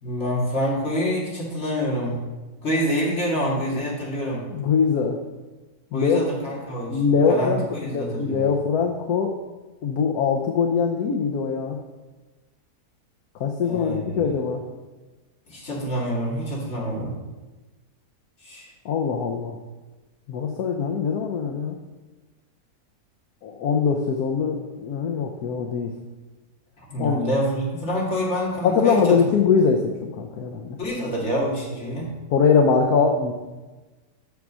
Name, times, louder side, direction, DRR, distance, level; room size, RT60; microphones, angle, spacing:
voice 1, 0.0-2.2 2.6-4.5 5.9-8.5 13.7-14.2 15.5-17.1 18.4-18.7 26.9-29.2 30.8-32.1, equal, 45° left, -4 dB, 2.5 m, -26 dB
voice 2, 4.5-5.2 5.9-6.2 6.9-9.3 9.8-11.8 13.4-14.6 18.8-19.6 20.3-21.8 23.4-25.9 27.0-27.2 28.6-30.8 32.3-33.3, left 5 dB, 70° left, 3 dB, 1.2 m, -22 dB
7.0 x 6.5 x 6.2 m, 1.2 s
omnidirectional pair, 1.7 m